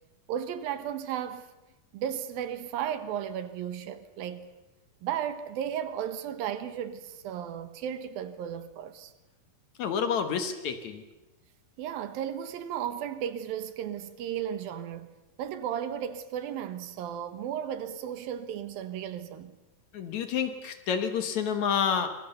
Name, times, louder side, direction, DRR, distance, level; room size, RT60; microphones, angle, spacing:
voice 1, 0.3-1.5 1.9-4.5 5.0-9.1 11.8-15.1 15.4-19.5, right 9 dB, 80° right, 3.0 m, -34 dB
voice 2, 9.8-11.0 19.9-22.1, left 7 dB, 60° left, 2.3 m, -29 dB
25.0 x 21.0 x 6.9 m
omnidirectional pair, 4.2 m